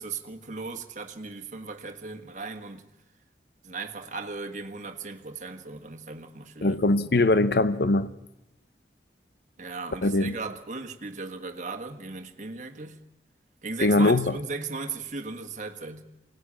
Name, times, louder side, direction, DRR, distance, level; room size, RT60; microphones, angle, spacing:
voice 1, 0.0-2.9 3.6-6.8 9.6-13.0 13.6-16.0, right 4 dB, 45° right, 1.5 m, -37 dB
voice 2, 6.6-8.1 10.0-10.3 13.8-14.3, left 2 dB, 60° left, 0.7 m, -21 dB
23.5 x 18.5 x 8.7 m
head